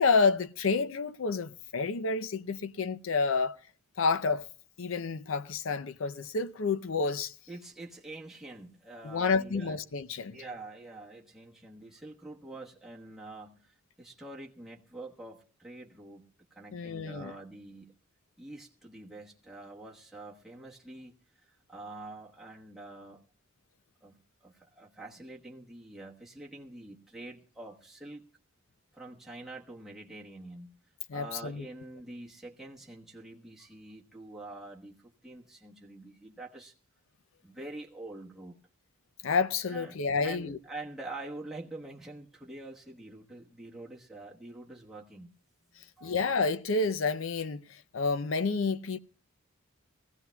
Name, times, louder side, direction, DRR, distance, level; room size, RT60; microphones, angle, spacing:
voice 1, 0.0-3.6 4.0-4.5 4.8-7.3 9.0-10.4 16.7-17.3 31.1-31.7 39.2-40.6 45.8-49.0, left 4 dB, 65° left, 0.6 m, -29 dB
voice 2, 7.5-9.8 10.3-16.2 16.5-17.9 18.4-21.1 21.4-23.2 24.0-28.2 28.9-30.8 31.1-36.7 37.4-38.6 39.7-45.3 46.0-46.2, right 2 dB, ahead, 1.2 m, -46 dB
21.5 x 15.5 x 2.2 m
head